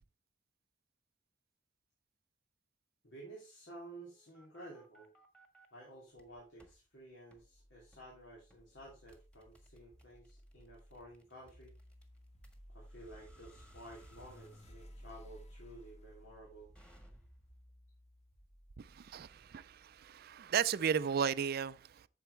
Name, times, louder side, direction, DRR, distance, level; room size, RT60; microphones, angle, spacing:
voice 1, 3.0-5.1 5.7-11.7 12.7-16.7, right 1 dB, 85° left, 3.0 m, -53 dB
sound 1, 3.9-5.7 6.1-6.8 7.3-7.5 7.9-8.1 8.5-17.6, equal, 5° left, 1.6 m, -65 dB
sound 2, 7.4-20.6, equal, 40° left, 1.4 m, -58 dB
voice 2, 18.8-22.1, right 7 dB, 55° right, 0.4 m, -35 dB
9.1 x 7.1 x 3.3 m
head